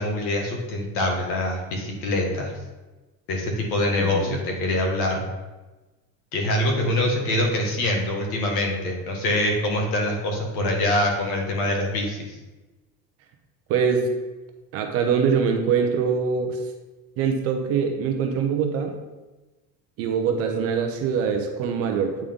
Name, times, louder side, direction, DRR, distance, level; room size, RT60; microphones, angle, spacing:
voice 1, 0.0-2.5 3.3-5.3 6.3-12.4, left 1 dB, 75° left, 1 dB, 1.7 m, -24 dB
voice 2, 4.0-4.4 13.7-14.0 14.7-16.6 17.2-19.0 20.0-22.2, right 6 dB, 35° right, 4 dB, 0.5 m, -23 dB
8.4 x 3.7 x 3.6 m, 1.2 s
cardioid pair, 165°, 44 cm